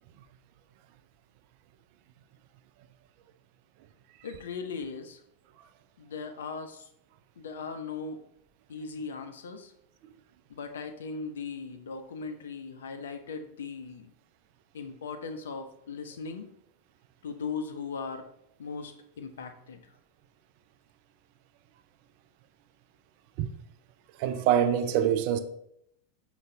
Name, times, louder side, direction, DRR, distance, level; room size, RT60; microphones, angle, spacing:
voice 1, 4.2-5.2 6.0-6.9 7.4-8.2 8.7-9.7 10.5-14.1 14.7-16.5 17.2-18.2 18.6-19.8, left 5 dB, 65° left, 0.5 m, -38 dB
voice 2, 24.2-25.4, right 9 dB, 45° right, 0.3 m, -24 dB
5.3 x 2.6 x 3.3 m
figure-of-eight pair, 90°, 0 cm